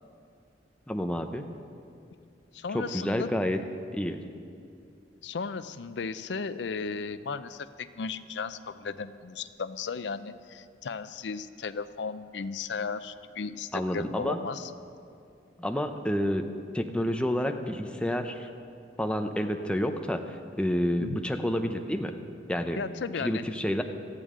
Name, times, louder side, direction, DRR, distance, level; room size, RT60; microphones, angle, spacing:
voice 1, 0.9-1.5 2.7-3.6 3.9-4.2 13.7-14.4 15.6-16.4 16.7-18.5 19.0-22.1 22.5-22.8 23.2-23.8, equal, 5° left, 5 dB, 0.7 m, -29 dB
voice 2, 2.5-3.3 5.2-14.7 21.0-21.2 22.8-23.4, left 5 dB, 85° left, 13 dB, 0.5 m, -35 dB
18.0 x 14.0 x 3.8 m, 2.4 s
head